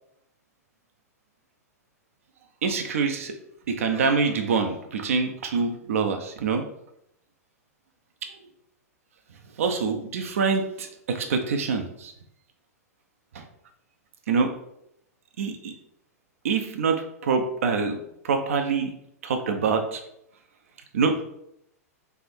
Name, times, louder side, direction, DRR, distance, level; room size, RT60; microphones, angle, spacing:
voice 1, 2.6-3.3 3.7-6.6 9.6-12.1 13.3-13.4 14.3-14.5 15.4-15.7 16.4-18.0 18.2-18.9 19.2-20.0 20.9-21.2, right 5 dB, 60° right, 5 dB, 0.6 m, -25 dB
3.5 x 3.3 x 4.3 m, 0.76 s
figure-of-eight pair, 100°, 9 cm